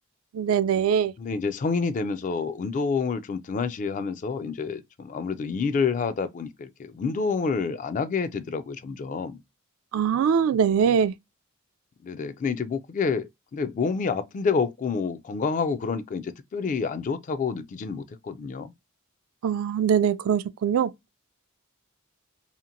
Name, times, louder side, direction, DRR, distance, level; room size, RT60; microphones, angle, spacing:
voice 1, 0.3-1.1 9.9-11.1 19.4-20.9, right 7 dB, 75° right, 0.3 m, -22 dB
voice 2, 1.2-9.4 12.0-18.7, left 5 dB, 40° left, 0.3 m, -28 dB
2.8 x 2.4 x 2.6 m
head